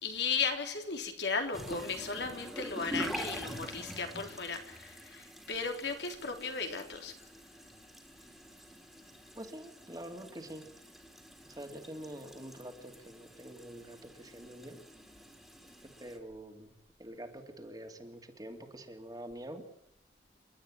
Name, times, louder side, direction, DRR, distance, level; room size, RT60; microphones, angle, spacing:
voice 1, 0.0-7.3, left 5 dB, 70° left, 3.7 m, -36 dB
sound 1, 1.5-16.2, equal, ahead, 3.0 m, -46 dB
voice 2, 9.4-10.6 11.4-14.8 15.8-16.7 17.0-19.7, right 1 dB, 20° right, 2.7 m, -46 dB
29.0 x 12.5 x 9.9 m
head